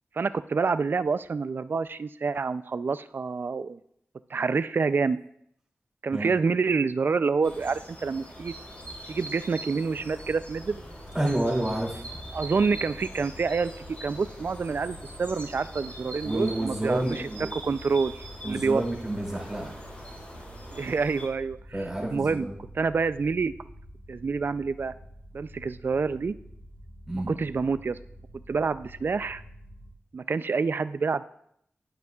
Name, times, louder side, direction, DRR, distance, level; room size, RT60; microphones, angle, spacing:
voice 1, 0.2-3.8 4.3-5.2 6.0-8.5 9.1-10.8 12.3-13.7 14.0-18.8 20.7-22.5 22.7-23.5 24.1-24.9 25.3-26.3 27.1-28.0 28.5-29.4 30.1-31.2, right 4 dB, 55° right, 14 dB, 0.3 m, -27 dB
sound 1, 7.4-21.3, right 1 dB, 35° left, 3.9 m, -43 dB
sound 2, 10.0-29.9, equal, 50° left, 1.6 m, -48 dB
voice 2, 11.1-12.0 16.2-17.5 18.4-19.7 21.7-22.5 27.1-27.3, right 1 dB, 15° right, -3 dB, 2.6 m, -29 dB
10.0 x 9.2 x 2.4 m, 0.70 s
wide cardioid pair, 80°, 4 cm